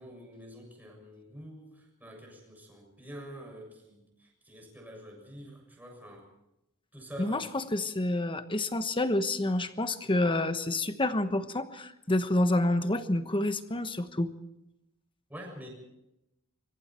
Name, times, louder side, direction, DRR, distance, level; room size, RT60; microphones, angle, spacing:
voice 1, 0.0-6.3 6.9-7.5 15.3-15.7, equal, 10° right, 0 dB, 6.8 m, -47 dB
voice 2, 7.2-14.3, left 1 dB, 25° left, 10 dB, 1.2 m, -28 dB
25.5 x 23.0 x 4.5 m, 0.86 s
head